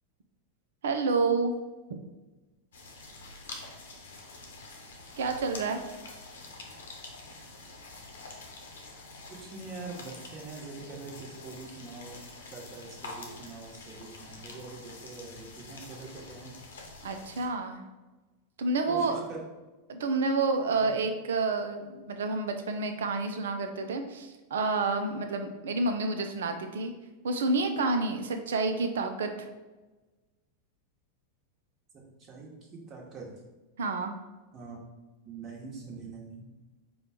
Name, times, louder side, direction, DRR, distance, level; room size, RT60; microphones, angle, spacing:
voice 1, 0.8-1.5 1.9-2.0 5.2-5.8 17.0-17.8 18.6-19.2 19.9-26.9 27.2-29.5 33.8-34.1, right 3 dB, 70° right, 6 dB, 0.5 m, -29 dB
sound 1, 2.7-17.5, left 3 dB, 75° left, 0.9 m, -46 dB
voice 2, 9.3-12.2 12.5-16.6 18.9-19.4 20.8-20.9 31.9-33.3 34.5-34.8 35.2-36.5, right 4 dB, 35° right, -2 dB, 1.3 m, -44 dB
5.0 x 2.3 x 4.4 m, 1.2 s
figure-of-eight pair, 90°, 0 cm